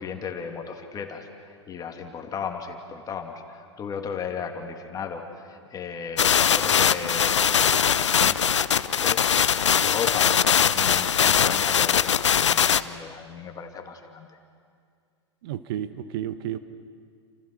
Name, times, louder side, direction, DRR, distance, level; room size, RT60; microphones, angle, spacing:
voice 1, 0.0-9.3 9.6-14.3, left 6 dB, 25° left, 4 dB, 2.9 m, -36 dB
sound 1, 6.2-12.8, left 8 dB, 80° left, 0.8 m, -21 dB
voice 2, 15.4-16.6, right 11 dB, 55° right, 12 dB, 1.2 m, -31 dB
29.5 x 28.0 x 6.2 m, 2.2 s
figure-of-eight pair, 100°, 15 cm